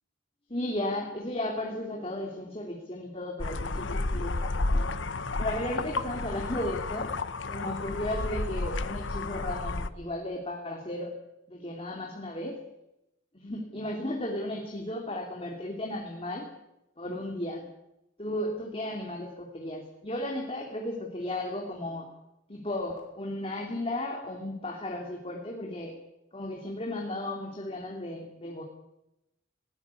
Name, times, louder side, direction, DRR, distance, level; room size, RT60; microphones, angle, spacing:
voice 1, 0.5-5.0 5.4-7.1 7.5-11.1 11.5-12.6 13.3-16.5 17.0-17.7 18.2-22.1 22.5-25.9 26.3-28.6, left 1 dB, 30° left, 0 dB, 2.9 m, -35 dB
sound 1, 3.4-9.9, left 2 dB, 75° left, 1.1 m, -31 dB
20.5 x 18.5 x 8.4 m, 0.89 s
head